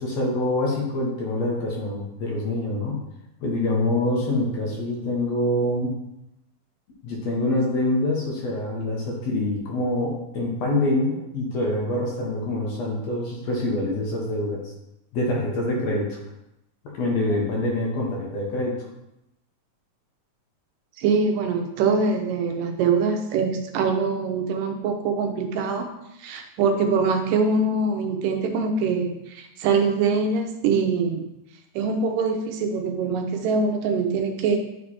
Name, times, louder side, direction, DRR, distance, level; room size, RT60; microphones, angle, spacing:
voice 1, 0.0-3.0 3.4-5.9 7.0-14.6 15.1-16.2 17.0-18.7, left 1 dB, 60° left, -3 dB, 2.2 m, -25 dB
voice 2, 21.0-25.9 26.2-31.3 31.8-34.6, right 4 dB, 90° right, 4 dB, 2.5 m, -23 dB
9.5 x 3.3 x 4.3 m, 0.85 s
omnidirectional pair, 3.8 m